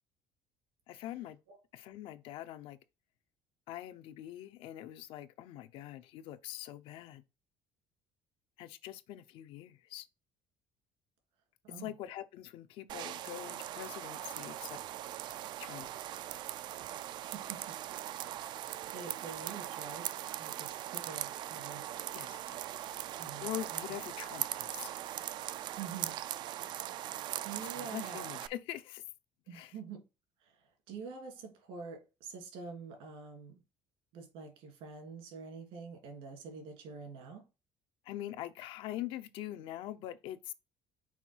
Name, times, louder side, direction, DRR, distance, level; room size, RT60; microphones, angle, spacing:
voice 1, 0.9-1.4 1.7-2.8 3.7-7.2 8.6-10.1 11.7-14.8 15.6-15.9 22.1-22.4 23.4-24.9 27.7-29.0 29.5-29.7 38.0-40.5, left 13 dB, 70° left, 0.7 m, -43 dB
sound 1, 12.9-28.5, right 12 dB, 55° right, 0.4 m, -40 dB
voice 2, 17.3-17.8 18.9-22.0 23.2-23.8 25.8-26.2 27.4-28.2 29.5-30.0 30.4-33.6 34.1-37.5, right 5 dB, 75° right, 2.8 m, -47 dB
5.8 x 4.6 x 4.5 m
cardioid pair, 160°, 9 cm